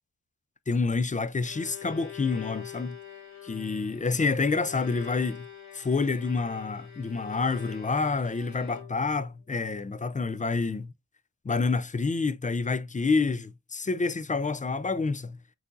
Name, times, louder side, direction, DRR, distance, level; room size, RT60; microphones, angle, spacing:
voice 1, 0.7-3.0 3.4-5.5 5.7-10.9 11.4-15.4, left 4 dB, 25° left, 0.3 m, -28 dB
Bowed string instrument, 1.4-9.2, left 10 dB, 75° left, 1.9 m, -45 dB
4.5 x 4.0 x 2.5 m
wide cardioid pair, 75°, 35 cm